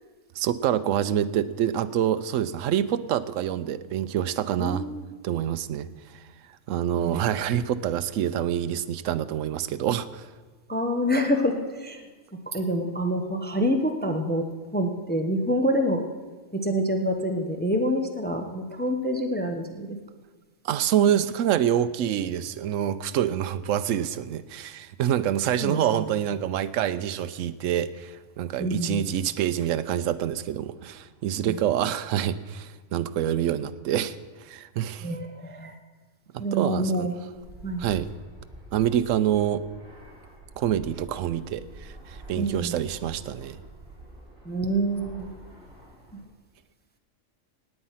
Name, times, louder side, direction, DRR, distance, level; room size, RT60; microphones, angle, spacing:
voice 1, 0.4-4.9 5.2-6.2 6.7-10.3 20.6-35.1 36.3-37.1 37.8-38.1 38.7-39.6 40.6-43.6, right 10 dB, 75° right, 12 dB, 1.0 m, -26 dB
voice 2, 4.6-5.0 7.0-7.2 10.7-12.0 12.5-14.4 14.7-16.0 16.5-19.9 25.6-26.0 28.6-29.1 31.5-31.6 35.0-35.7 36.4-37.2 37.6-37.9 42.4-42.8 44.4-45.3, equal, 10° left, 4 dB, 0.8 m, -27 dB
Fixed-wing aircraft airplane, 37.3-46.2, right 1 dB, 50° right, 4.0 m, -47 dB
17.5 x 9.0 x 5.7 m, 1.3 s
omnidirectional pair, 1.4 m